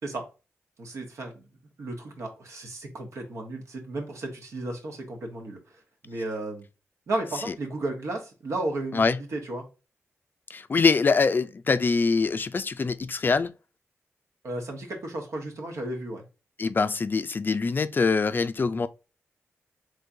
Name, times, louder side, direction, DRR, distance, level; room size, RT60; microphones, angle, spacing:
voice 1, 0.8-1.4 1.8-5.6 6.0-6.6 7.1-9.6 14.4-16.2, right 2 dB, 75° right, 1.2 m, -34 dB
voice 2, 10.5-13.5 16.6-18.9, left 4 dB, 40° left, 0.3 m, -24 dB
3.6 x 3.2 x 2.7 m
cardioid pair, 75°, 5 cm